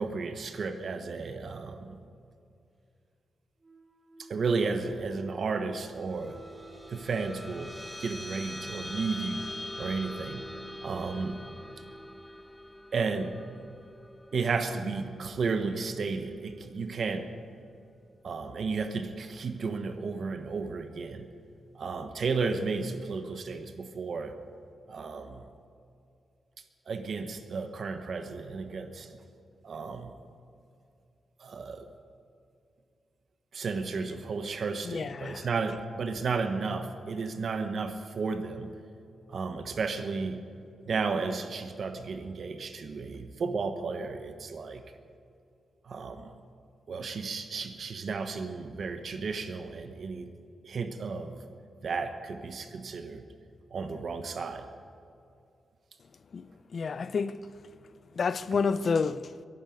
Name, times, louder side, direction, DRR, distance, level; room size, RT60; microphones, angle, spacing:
voice 1, 0.0-2.0 4.2-6.4 6.9-7.7 8.0-9.5 9.8-10.5 10.8-11.4 12.9-13.4 13.7-13.8 14.3-17.3 18.2-21.3 21.7-24.3 24.9-25.5 26.9-29.1 29.6-30.1 31.4-31.9 33.5-38.8 39.3-40.4 40.9-44.8 45.8-46.3 46.9-50.3 50.6-51.4 51.8-53.2 53.7-54.7, right 4 dB, 50° right, 1.1 m, -33 dB
Wind instrument woodwind instrument, 3.6-12.3, right 1 dB, 25° right, 2.5 m, -52 dB
sound 1, 5.9-16.7, left 1 dB, 10° left, 0.8 m, -44 dB
voice 2, 34.8-35.5 56.3-57.5 58.1-59.3, left 5 dB, 45° left, 0.4 m, -30 dB
23.0 x 12.0 x 5.2 m
wide cardioid pair, 145°, 0 cm